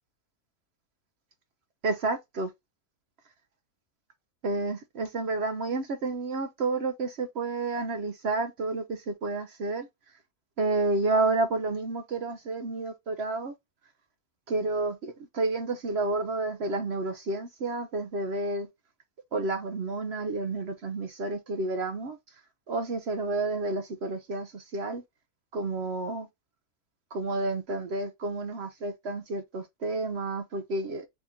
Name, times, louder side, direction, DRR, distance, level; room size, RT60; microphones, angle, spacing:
voice 1, 1.8-2.5 4.4-9.9 10.6-13.5 14.5-18.7 19.3-22.2 22.7-25.0 25.5-26.3 27.1-31.1, right 2 dB, 55° right, 0.8 m, -30 dB
3.6 x 2.8 x 3.6 m
omnidirectional pair, 1.6 m